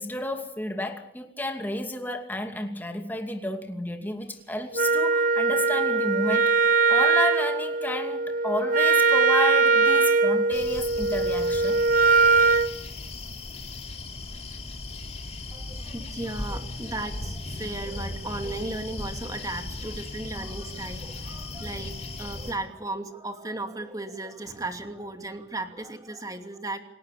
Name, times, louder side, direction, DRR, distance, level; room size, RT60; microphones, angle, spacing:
voice 1, 0.0-11.8, left 1 dB, 10° left, 4 dB, 2.6 m, -32 dB
Wind instrument woodwind instrument, 4.7-12.7, right 4 dB, 50° right, 1.5 m, -21 dB
sound 1, 10.5-22.5, left 2 dB, 35° left, 3.8 m, -37 dB
voice 2, 15.5-26.8, right 2 dB, 20° right, 6 dB, 2.6 m, -35 dB
29.5 x 19.5 x 6.9 m, 0.73 s
head